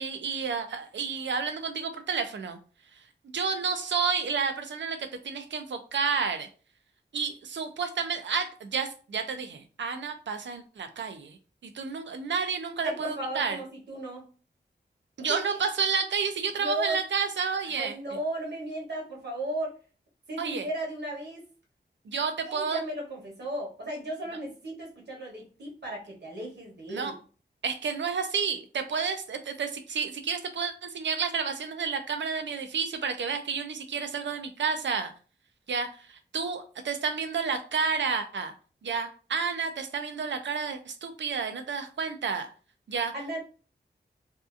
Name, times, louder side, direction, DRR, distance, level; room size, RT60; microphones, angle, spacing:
voice 1, 0.0-2.6 3.3-5.0 5.2-6.5 7.1-11.4 11.6-13.6 15.2-17.9 20.4-20.7 22.1-22.8 26.9-27.1 27.6-35.1 35.7-38.5 38.8-42.5 42.9-43.1, right 5 dB, 90° right, 7 dB, 0.4 m, -30 dB
voice 2, 12.8-14.2 15.3-15.4 16.6-17.0 17.6-19.8 20.3-21.4 22.5-27.1 43.1-43.4, right 1 dB, 70° right, -2 dB, 1.1 m, -35 dB
2.7 x 2.4 x 2.4 m, 0.37 s
wide cardioid pair, 95°, 18 cm